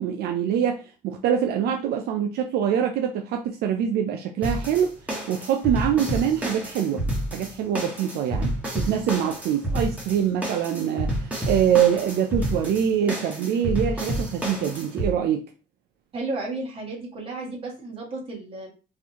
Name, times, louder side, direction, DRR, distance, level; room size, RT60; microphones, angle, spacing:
voice 1, 0.0-4.9 5.3-7.1 7.3-15.5, right 9 dB, 70° right, 0.5 m, -24 dB
sound 1, 4.4-15.1, right 1 dB, 10° right, 1.3 m, -29 dB
voice 2, 16.1-18.7, right 2 dB, 30° right, 1.7 m, -33 dB
3.9 x 2.6 x 2.9 m
cardioid pair, 110°, 17 cm